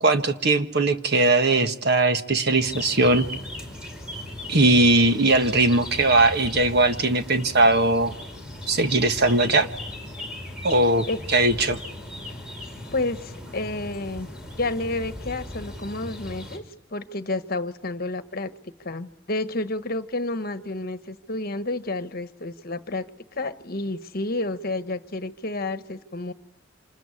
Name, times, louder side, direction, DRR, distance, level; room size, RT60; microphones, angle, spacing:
voice 1, 0.0-3.3 4.5-8.1 8.7-9.7 10.6-11.8, right 2 dB, 55° right, 8 dB, 1.6 m, -20 dB
sound 1, 2.6-16.6, left 1 dB, 5° right, 5.1 m, -38 dB
voice 2, 12.9-14.3 14.6-16.6 16.9-18.5 18.8-26.3, left 2 dB, 50° left, 11 dB, 1.3 m, -30 dB
27.0 x 20.5 x 9.9 m, 0.89 s
head